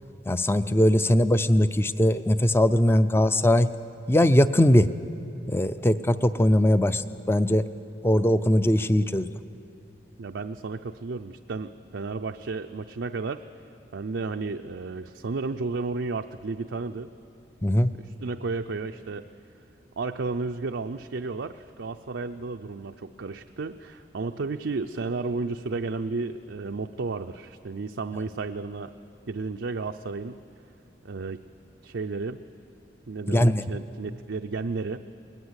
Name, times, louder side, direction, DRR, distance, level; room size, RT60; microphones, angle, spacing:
voice 1, 0.3-3.7 4.1-4.9 5.5-7.0 7.3-7.6 8.0-9.3 17.6-17.9 33.3-33.6, left 1 dB, 15° left, 13 dB, 0.5 m, -20 dB
voice 2, 10.2-13.4 13.9-17.1 18.0-19.3 20.0-28.9 29.3-30.4 31.0-31.4 31.8-32.4 33.1-35.0, right 3 dB, 75° right, 6 dB, 0.5 m, -33 dB
21.0 x 20.0 x 8.1 m, 2.6 s
head